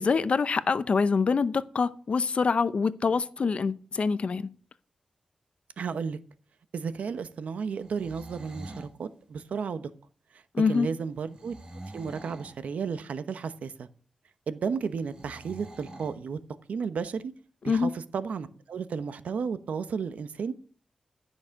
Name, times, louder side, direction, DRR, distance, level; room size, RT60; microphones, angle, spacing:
voice 1, 0.0-4.5 10.5-10.9 17.6-17.9, left 5 dB, 55° left, 0.7 m, -25 dB
voice 2, 5.8-6.2 6.7-9.9 10.3-11.5 11.9-13.9 14.5-16.4 16.7-17.3 17.6-20.5, right 6 dB, 85° right, 1.0 m, -33 dB
sound 1, 7.7-8.9 11.3-12.6 15.1-16.2, right 1 dB, 35° right, 4.0 m, -45 dB
15.0 x 6.3 x 6.4 m
wide cardioid pair, 85°, 2 cm